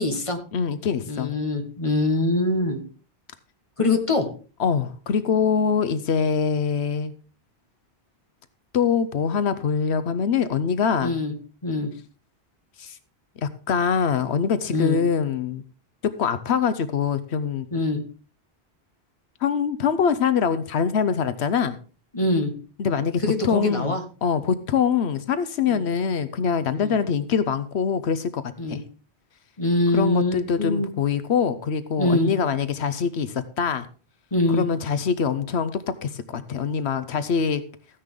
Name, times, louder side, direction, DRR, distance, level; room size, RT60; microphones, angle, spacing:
voice 1, 0.0-0.4 1.1-2.8 3.8-4.3 11.0-11.3 11.6-11.9 14.7-15.0 17.7-18.0 22.1-22.5 23.2-24.0 25.7-25.8 26.8-27.0 28.6-28.8 29.6-30.9 32.0-32.3 34.3-34.7, left 2 dB, 30° left, 5 dB, 1.7 m, -23 dB
voice 2, 0.5-1.3 4.6-7.1 8.7-11.1 12.8-13.0 13.4-15.6 16.2-17.7 19.4-21.8 22.8-24.0 24.2-28.4 28.7-28.8 29.9-33.9 34.5-37.6, left 6 dB, 80° left, 12 dB, 1.1 m, -24 dB
14.5 x 9.9 x 3.7 m, 0.38 s
omnidirectional pair, 1.1 m